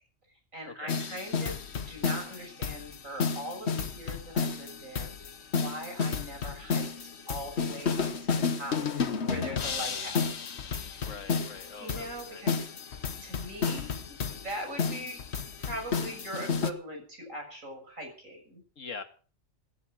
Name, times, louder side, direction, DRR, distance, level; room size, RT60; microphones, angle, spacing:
voice 1, 0.5-1.6 1.9-5.1 5.5-6.9 7.3-8.1 8.5-10.3 11.8-12.6 13.2-18.6, right 1 dB, 85° right, 3 dB, 7.2 m, -41 dB
sound 1, 0.9-16.7, left 5 dB, 60° left, 1.4 m, -32 dB
voice 2, 11.0-12.4 18.8-19.0, left 5 dB, 75° left, 7 dB, 2.1 m, -43 dB
17.5 x 11.0 x 6.4 m, 0.41 s
omnidirectional pair, 1.3 m